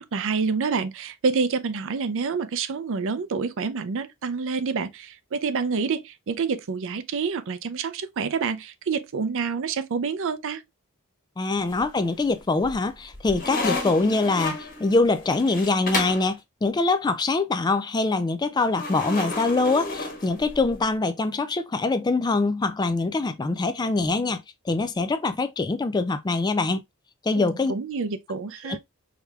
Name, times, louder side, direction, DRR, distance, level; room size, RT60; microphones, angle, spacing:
voice 1, 0.1-10.6 27.3-28.8, right 5 dB, 60° right, 0.5 m, -28 dB
voice 2, 11.4-26.8 27.2-27.7 28.6-28.8, left 3 dB, 20° left, 0.3 m, -24 dB
sound 1, 11.6-12.2 12.6-16.3 18.7-20.8, left 2 dB, 40° left, 1.3 m, -32 dB
4.8 x 3.3 x 2.3 m
head